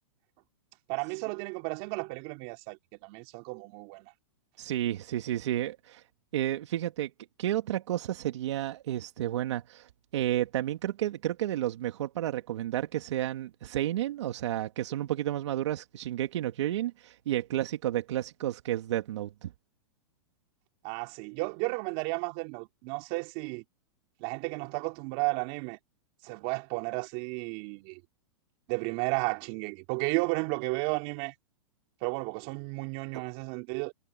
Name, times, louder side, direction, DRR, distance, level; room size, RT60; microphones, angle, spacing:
voice 1, 0.9-4.1 20.8-23.6 24.2-25.8 26.2-28.0 28.7-31.3 32.0-33.9, right 29 dB, 45° right, 3.7 m, -33 dB
voice 2, 4.6-6.0 6.3-7.1 7.4-19.5, right 13 dB, 70° right, 2.1 m, -31 dB
hypercardioid pair, 130°, 15 cm